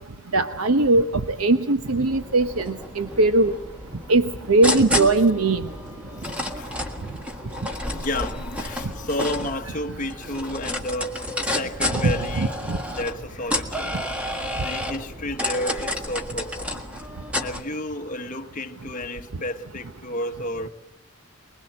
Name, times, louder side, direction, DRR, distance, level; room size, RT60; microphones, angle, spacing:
voice 1, 0.3-3.5 4.1-5.7 11.9-12.8, right 2 dB, 90° right, 0.9 m, -20 dB
sound 1, 2.1-17.6, left 1 dB, 5° right, 1.7 m, -31 dB
voice 2, 6.2-6.8 7.9-12.5 12.9-16.8 17.4-20.7, left 1 dB, 35° left, 1.3 m, -32 dB
24.0 x 22.0 x 7.6 m
head